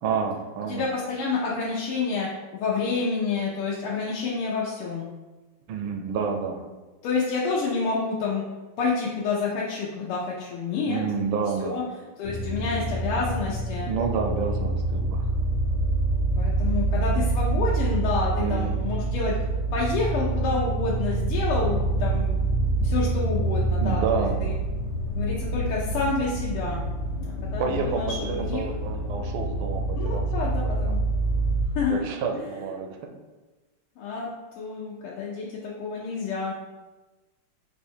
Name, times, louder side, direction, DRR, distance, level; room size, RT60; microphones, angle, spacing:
voice 1, 0.0-0.9 5.7-6.7 10.9-11.8 13.9-15.3 18.4-18.7 23.8-24.4 27.6-30.3 30.6-30.9 31.9-33.1, right 6 dB, 75° right, 4 dB, 1.3 m, -29 dB
voice 2, 0.7-5.1 7.0-8.4 8.8-11.0 11.6-11.8 12.2-13.9 16.4-19.4 19.7-22.3 22.8-24.5 25.1-26.8 27.2-28.6 30.0-31.0 31.7-32.1 32.3-32.4 34.0-34.3 34.6-36.6, left 4 dB, 85° left, -5 dB, 1.6 m, -28 dB
sound 1, 12.2-31.6, right 2 dB, 70° left, 1.4 m, -26 dB
5.2 x 2.1 x 4.4 m, 1.2 s
omnidirectional pair, 2.4 m